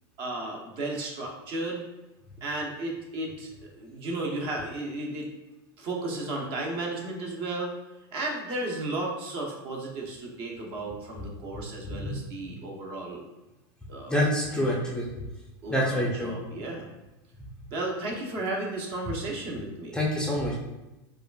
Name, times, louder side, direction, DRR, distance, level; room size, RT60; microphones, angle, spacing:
voice 1, 0.2-1.8 2.4-5.3 5.8-7.7 8.1-13.2 13.9-14.2 14.5-14.8 15.6-16.9 17.7-20.0, right 2 dB, 45° right, 0 dB, 0.8 m, -34 dB
voice 2, 14.1-15.1 15.7-16.3 19.9-20.6, equal, 5° left, -3 dB, 0.5 m, -26 dB
4.8 x 2.4 x 2.3 m, 1.0 s
supercardioid pair, 135°, 13 cm